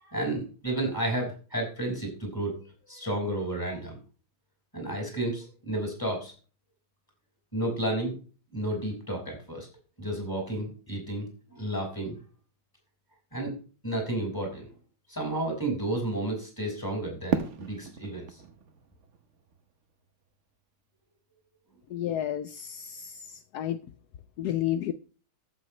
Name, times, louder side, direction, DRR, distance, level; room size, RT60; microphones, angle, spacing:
voice 1, 0.1-2.6 2.9-4.0 4.7-6.3 7.5-8.1 8.5-9.7 10.0-12.2 13.3-13.5 13.8-14.7 15.1-18.3, right 1 dB, 10° left, 5.5 m, -31 dB
Fireworks, 17.3-20.3, right 6 dB, 45° right, 1.1 m, -35 dB
voice 2, 21.9-23.2 23.5-23.8 24.4-24.9, left 11 dB, 70° left, 1.0 m, -30 dB
14.5 x 7.9 x 3.2 m
omnidirectional pair, 2.3 m